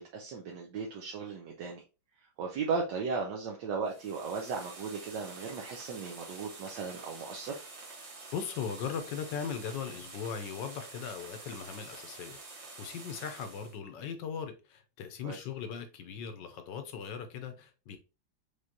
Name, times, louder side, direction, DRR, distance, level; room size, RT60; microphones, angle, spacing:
voice 1, 0.0-1.8 2.2-7.6 15.2-15.4, right 5 dB, 70° right, 1.4 m, -36 dB
sound 1, 3.8-13.8, right 3 dB, 45° right, 1.6 m, -48 dB
voice 2, 8.3-18.0, left 7 dB, 75° left, 1.3 m, -39 dB
5.1 x 3.2 x 2.7 m
omnidirectional pair, 2.1 m